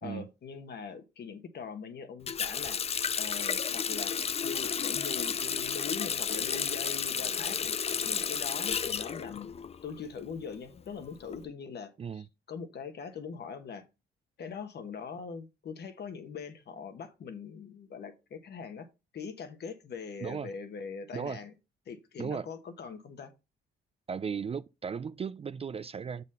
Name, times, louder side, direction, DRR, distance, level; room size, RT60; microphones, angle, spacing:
voice 1, 0.0-4.1 4.4-7.7 8.0-9.5 9.8-13.8 14.4-18.9 19.1-21.5 21.9-23.3, left 6 dB, 55° left, 1.3 m, -42 dB
Water tap faucet, 2.3-10.0 10.3-11.4, left 7 dB, 30° left, 0.4 m, -32 dB
voice 2, 24.1-26.2, right 6 dB, 30° right, 0.4 m, -36 dB
7.2 x 4.1 x 5.4 m
cardioid pair, 90°, 20 cm